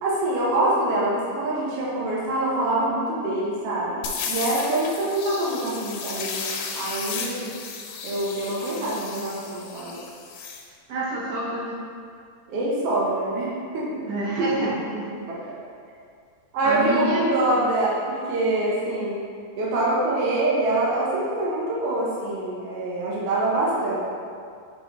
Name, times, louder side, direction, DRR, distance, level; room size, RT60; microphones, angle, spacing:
voice 1, 0.0-4.0 4.3-6.4 6.7-7.5 8.0-10.0 12.5-14.0 15.3-15.6 16.5-19.1 19.6-24.0, right 2 dB, 70° right, -6 dB, 1.4 m, -25 dB
sound 1, 4.0-10.6, left 5 dB, 90° left, 2.4 m, -34 dB
voice 2, 10.9-11.8 14.1-15.2 16.6-17.3, right 2 dB, 55° right, -8 dB, 2.3 m, -27 dB
6.7 x 3.6 x 4.6 m, 2.3 s
omnidirectional pair, 4.0 m